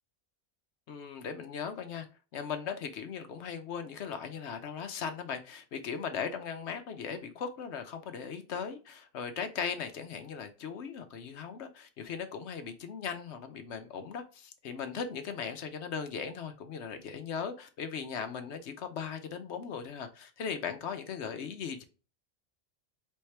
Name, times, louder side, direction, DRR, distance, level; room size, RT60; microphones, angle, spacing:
voice 1, 0.9-2.1 2.3-21.8, left 6 dB, 75° left, 0.9 m, -38 dB
4.4 x 3.5 x 3.3 m
omnidirectional pair, 1.2 m